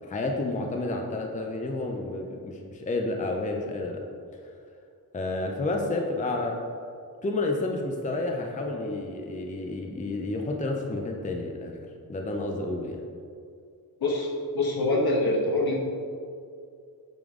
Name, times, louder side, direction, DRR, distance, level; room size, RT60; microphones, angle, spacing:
voice 1, 0.0-4.0 5.1-6.6 7.2-11.8 12.1-13.0, left 2 dB, 20° left, 2 dB, 0.5 m, -30 dB
voice 2, 14.0-15.8, left 2 dB, 75° left, -1 dB, 1.2 m, -25 dB
8.5 x 3.7 x 3.6 m, 2.4 s
wide cardioid pair, 150°, 37 cm